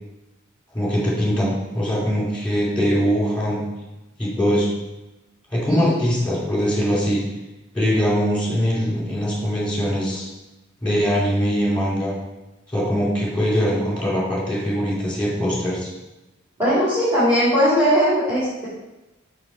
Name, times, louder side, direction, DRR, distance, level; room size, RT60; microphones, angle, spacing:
voice 1, 0.7-3.6 4.2-4.7 5.5-7.2 7.7-10.3 10.8-12.1 12.7-15.9, equal, 5° left, -6 dB, 2.9 m, -22 dB
voice 2, 16.6-18.7, equal, 15° right, -11 dB, 2.8 m, -19 dB
6.0 x 6.0 x 4.7 m, 1.0 s
head